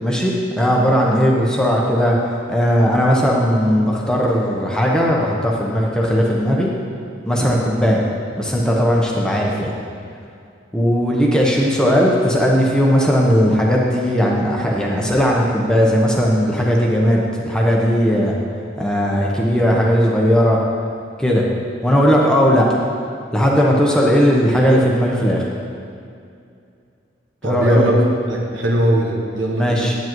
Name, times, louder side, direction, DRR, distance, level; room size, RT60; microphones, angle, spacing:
voice 1, 0.0-6.7 7.3-8.0 8.4-9.7 10.7-18.3 18.8-20.6 21.2-21.5 21.8-22.7 23.3-25.4 27.4-27.8 29.5-29.9, equal, 5° left, -3 dB, 0.8 m, -17 dB
voice 2, 27.4-28.0 28.3-29.8, right 1 dB, 80° right, -1 dB, 1.3 m, -20 dB
10.5 x 9.0 x 3.1 m, 2.4 s
head